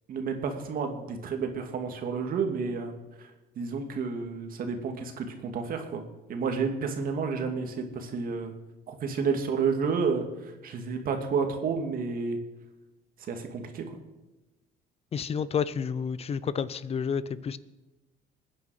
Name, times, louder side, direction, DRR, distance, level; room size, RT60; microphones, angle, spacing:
voice 1, 0.1-3.0 3.6-6.0 6.3-8.5 8.9-10.2 10.6-12.4 13.3-13.9, right 5 dB, 60° right, 4 dB, 2.4 m, -30 dB
voice 2, 15.1-17.6, left 6 dB, 35° left, 17 dB, 0.8 m, -30 dB
21.5 x 9.7 x 5.0 m, 1.1 s
cardioid pair, 110°, 17 cm